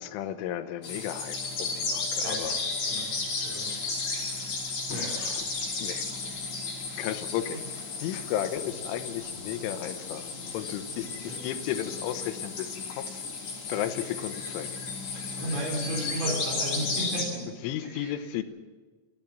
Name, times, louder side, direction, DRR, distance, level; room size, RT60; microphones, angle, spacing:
voice 1, 0.0-2.6 3.6-4.0 4.9-5.5 5.8-6.1 7.0-7.6 8.0-10.3 10.5-13.2 13.7-15.4 17.6-18.4, left 11 dB, 85° left, 9 dB, 3.4 m, -34 dB
sound 1, 0.8-17.3, left 4 dB, 55° left, 5.6 m, -34 dB
voice 2, 4.1-4.6 4.9-5.2 11.3-11.4 15.4-17.4 17.9-18.1, right 1 dB, 90° right, -2 dB, 6.9 m, -34 dB
28.5 x 12.0 x 7.7 m, 1.3 s
omnidirectional pair, 5.6 m